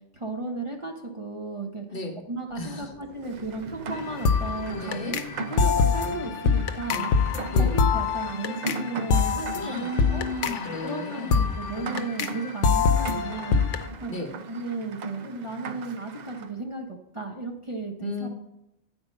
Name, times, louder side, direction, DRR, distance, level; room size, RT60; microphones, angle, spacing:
voice 1, 0.1-1.8 2.3-5.2 5.5-7.1 7.5-10.3 10.8-13.6 14.0-18.3, right 3 dB, 30° right, 0 dB, 0.8 m, -34 dB
voice 2, 1.9-2.2 2.6-2.9 4.8-5.2 7.5-7.7 9.6-11.5 14.0-14.3 18.0-18.3, left 2 dB, 55° left, 4 dB, 1.2 m, -34 dB
sound 1, 2.5-8.5 9.5-10.8, right 2 dB, 75° right, 1.8 m, -48 dB
Rain, 3.2-16.5, right 4 dB, 55° right, 0.5 m, -39 dB
sound 2, 3.9-13.9, left 5 dB, 80° left, 1.0 m, -25 dB
9.2 x 4.5 x 5.4 m, 0.87 s
omnidirectional pair, 1.2 m